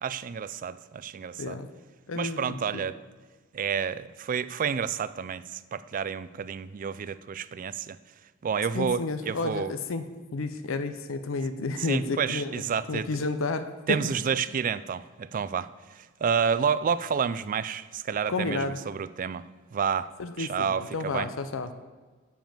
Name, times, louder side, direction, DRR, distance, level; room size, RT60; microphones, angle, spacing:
voice 1, 0.0-1.6 2.1-3.0 3.5-8.0 8.4-9.7 11.8-13.1 13.9-15.7 16.0-19.4 19.7-20.1 20.4-21.3, right 6 dB, 40° right, 15 dB, 0.3 m, -30 dB
voice 2, 1.4-1.7 2.1-2.8 8.7-10.0 10.3-12.6 12.9-13.7 18.3-18.8 20.2-20.7 20.9-21.7, left 3 dB, 75° left, 10 dB, 0.6 m, -31 dB
7.3 x 7.0 x 7.5 m, 1.4 s
head